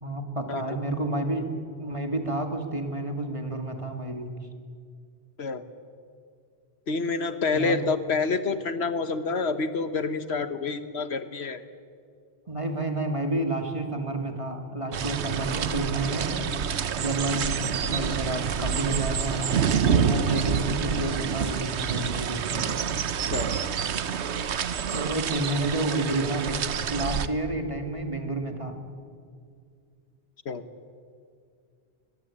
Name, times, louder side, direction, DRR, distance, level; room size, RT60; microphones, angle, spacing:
voice 1, 0.0-1.5 1.8-4.3 7.5-7.8 12.5-17.5 17.9-22.6 24.9-26.6 26.9-28.8, right 2 dB, 30° right, 4 dB, 2.5 m, -30 dB
voice 2, 6.9-11.6 23.3-23.5 30.4-30.6, left 4 dB, 75° left, 11 dB, 1.4 m, -28 dB
sound 1, 14.9-27.3, right 7 dB, 90° right, 1.2 m, -27 dB
22.5 x 21.5 x 8.7 m, 2.3 s
omnidirectional pair, 1.1 m